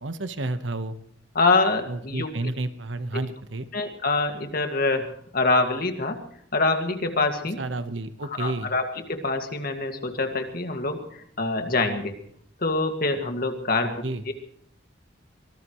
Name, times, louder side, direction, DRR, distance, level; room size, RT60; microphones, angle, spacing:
voice 1, 0.0-1.0 1.9-3.7 7.6-8.7 14.0-14.2, right 2 dB, 75° right, 10 dB, 1.2 m, -31 dB
voice 2, 1.4-2.3 3.1-3.2 3.7-6.2 6.5-7.7 8.3-12.2 12.6-14.3, left 3 dB, 50° left, 6 dB, 2.1 m, -25 dB
24.0 x 18.5 x 3.2 m, 0.64 s
head